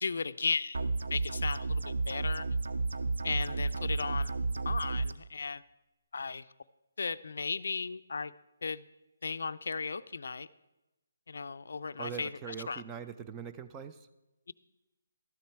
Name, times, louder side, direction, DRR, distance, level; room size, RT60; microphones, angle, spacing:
voice 1, 0.0-0.8 1.1-2.5 3.2-4.4 4.7-5.6 6.1-6.4 7.0-8.3 8.6-8.8 9.2-10.5 11.3-12.3 12.7-12.8, left 4 dB, 70° left, 15 dB, 0.4 m, -35 dB
sound 1, 0.7-5.1, right 3 dB, 80° right, 0.5 m, -32 dB
voice 2, 12.0-14.1, right 7 dB, 15° right, 10 dB, 0.4 m, -42 dB
13.0 x 7.3 x 4.6 m, 1.0 s
hypercardioid pair, 160°, 0 cm